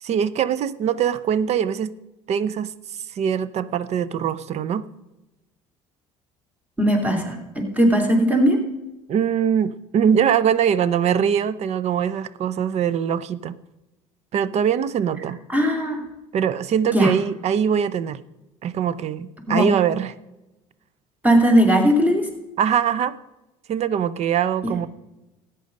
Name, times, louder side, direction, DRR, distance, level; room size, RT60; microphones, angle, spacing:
voice 1, 0.0-1.9 2.3-2.7 3.1-4.9 9.1-13.6 14.3-15.4 16.3-18.2 18.6-20.1 22.6-23.2 23.7-24.9, right 8 dB, 50° right, 18 dB, 0.6 m, -22 dB
voice 2, 6.8-8.6 15.5-16.1 16.9-17.1 19.5-19.7 21.2-22.3, equal, 10° right, 3 dB, 2.8 m, -18 dB
13.5 x 9.1 x 5.3 m, 1.0 s
supercardioid pair, 85°, 15 cm